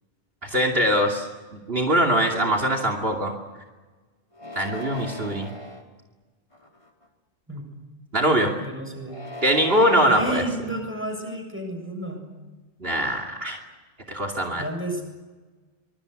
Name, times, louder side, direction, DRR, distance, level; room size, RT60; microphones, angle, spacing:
voice 1, 0.4-1.3 1.5-3.3 4.5-5.5 8.1-8.5 9.4-10.4 12.8-13.6 14.1-14.6, equal, 55° right, 5 dB, 3.0 m, -22 dB
sound 1, 4.3-5.8 6.5-7.0 9.0-10.5, left 2 dB, 30° left, 4.3 m, -38 dB
voice 2, 8.6-9.2 10.1-12.2 14.6-15.0, right 1 dB, 10° right, 4 dB, 7.6 m, -31 dB
26.0 x 24.0 x 8.2 m, 1.3 s
omnidirectional pair, 1.2 m